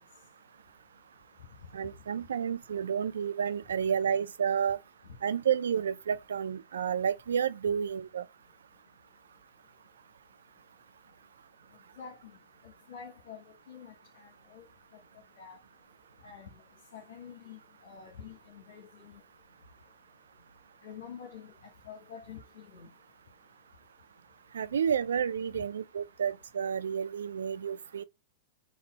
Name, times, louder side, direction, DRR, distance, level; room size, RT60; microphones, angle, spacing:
voice 1, 1.7-4.8 5.2-8.2 24.5-28.0, right 7 dB, 90° right, 0.3 m, -30 dB
voice 2, 12.9-13.4 13.7-14.7 15.4-15.6 16.2-16.5 16.9-19.1 20.8-21.5 21.9-22.4 22.7-22.9, left 7 dB, 70° left, 1.2 m, -47 dB
4.1 x 2.7 x 4.1 m
hypercardioid pair, 130°, 0 cm